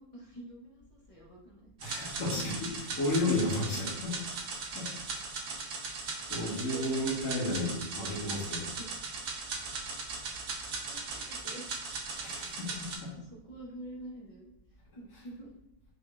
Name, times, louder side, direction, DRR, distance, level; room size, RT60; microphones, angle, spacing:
voice 1, 0.0-2.1 2.3-2.4 6.7-7.5 8.2-8.9 10.9-11.6 12.6-12.8 13.1-14.5 14.9-15.6, right 1 dB, 35° left, -4 dB, 0.5 m, -48 dB
voice 2, 1.8-4.3 4.7-5.3 6.3-8.7 12.2-13.1, left 2 dB, 70° left, -7 dB, 2.2 m, -33 dB
sound 1, 1.8-13.0, right 4 dB, 80° right, 1.3 m, -38 dB
5.3 x 2.5 x 3.2 m, 0.87 s
omnidirectional pair, 1.8 m